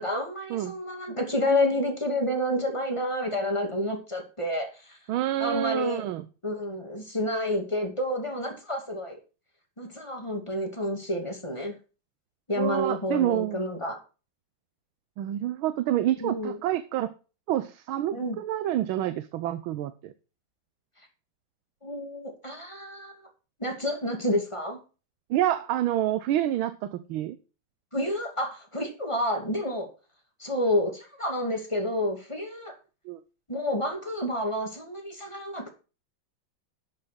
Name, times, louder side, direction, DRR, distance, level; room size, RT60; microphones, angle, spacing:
voice 1, 0.0-5.0 5.4-6.0 6.4-9.2 9.8-11.8 12.5-14.0 16.2-16.6 18.1-18.4 21.8-23.2 23.6-24.8 27.9-29.9 30.4-32.7 33.5-35.7, left 1 dB, 15° left, 3 dB, 2.3 m, -29 dB
voice 2, 5.1-6.3 12.6-13.6 15.2-17.1 17.5-20.1 25.3-27.4 33.1-33.2, right 12 dB, 85° right, 11 dB, 1.5 m, -28 dB
12.0 x 5.8 x 6.1 m, 0.34 s
omnidirectional pair, 2.2 m